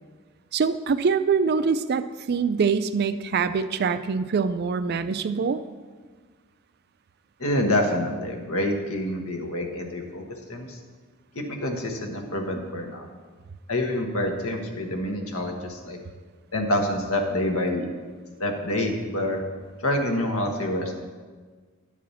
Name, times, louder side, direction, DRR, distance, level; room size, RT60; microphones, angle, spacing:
voice 1, 0.5-5.6, right 5 dB, 45° right, 12 dB, 0.3 m, -24 dB
voice 2, 7.4-10.8 11.3-13.1 13.7-16.0 16.5-17.9 18.4-19.4 19.8-20.9, left 1 dB, 75° left, 3 dB, 1.3 m, -27 dB
10.0 x 4.9 x 7.0 m, 1.5 s
head